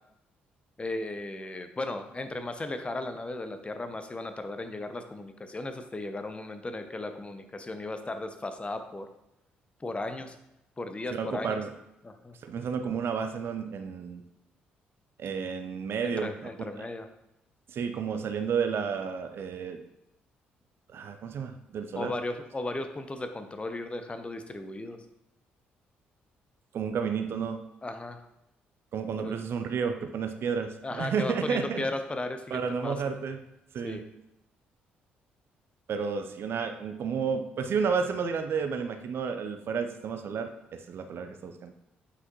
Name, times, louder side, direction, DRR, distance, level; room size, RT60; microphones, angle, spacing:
voice 1, 0.8-9.1 9.8-10.3 10.8-11.6 12.0-12.3 16.0-17.1 22.0-25.0 27.8-28.2 29.2-29.3 30.8-33.0 33.8-34.0, left 2 dB, 20° left, 8 dB, 0.8 m, -36 dB
voice 2, 11.1-11.7 12.4-14.2 15.2-16.9 17.7-19.8 20.9-22.1 26.7-27.6 28.9-31.8 32.5-33.4 33.7-34.0 35.9-41.7, right 6 dB, 50° right, 7 dB, 0.6 m, -31 dB
7.9 x 5.8 x 3.0 m, 0.86 s
figure-of-eight pair, 45°, 5 cm